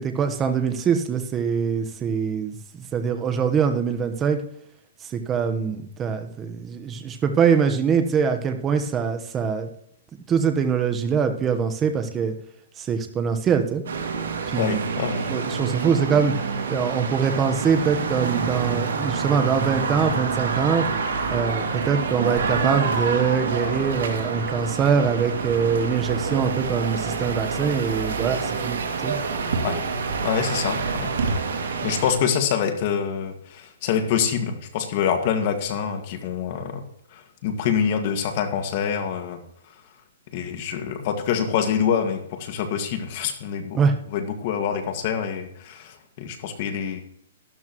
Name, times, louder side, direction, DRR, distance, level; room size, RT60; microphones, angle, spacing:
voice 1, 0.0-4.4 5.0-9.7 10.3-12.3 12.8-13.8 14.5-14.8 15.3-16.3 16.7-20.9 21.3-29.2 43.7-44.0, right 6 dB, 20° right, 6 dB, 1.2 m, -23 dB
sound 1, 13.9-32.1, right 4 dB, 75° right, 2.5 m, -27 dB
voice 2, 14.6-15.3 29.6-29.8 30.2-31.2 31.8-36.8 37.1-39.4 40.3-43.8 44.1-47.0, left 7 dB, 45° left, 6 dB, 2.0 m, -26 dB
13.0 x 12.5 x 3.1 m, 0.71 s
hypercardioid pair, 150°, 0 cm